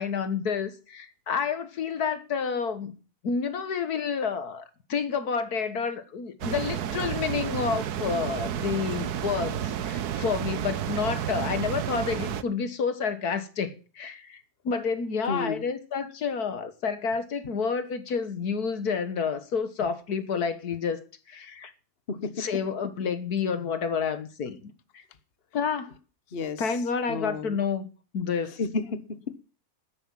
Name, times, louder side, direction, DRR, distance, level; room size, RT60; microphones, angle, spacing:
voice 1, 0.0-3.0 3.2-4.6 4.9-21.7 22.4-24.6 24.9-25.0 25.5-26.0 26.6-27.9 28.1-28.6, left 6 dB, 75° left, 1.9 m, -29 dB
sound 1, 6.4-12.4, right 10 dB, 80° right, 1.4 m, -31 dB
voice 2, 15.3-15.6 22.1-22.5 26.3-26.7 27.1-27.6 28.6-29.4, left 4 dB, 40° left, 1.3 m, -32 dB
13.0 x 10.0 x 7.4 m
omnidirectional pair, 1.7 m